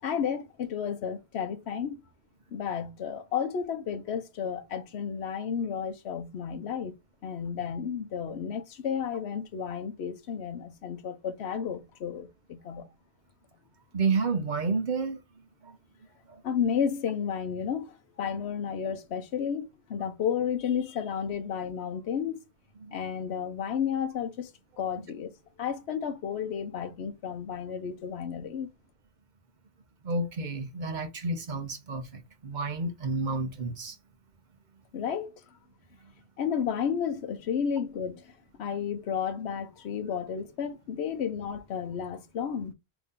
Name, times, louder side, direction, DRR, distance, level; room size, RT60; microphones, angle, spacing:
voice 1, 0.0-2.0 2.5-6.9 7.2-12.9 16.4-22.4 22.9-24.5 24.8-25.3 25.6-28.7 34.9-35.3 36.4-38.3 38.6-42.7, left 7 dB, 80° left, 1.0 m, -32 dB
voice 2, 13.9-15.2 15.6-15.8 16.3-16.4 22.8-23.0 30.0-34.0, right 3 dB, 50° right, 0.8 m, -30 dB
4.8 x 2.7 x 3.6 m
omnidirectional pair, 1.1 m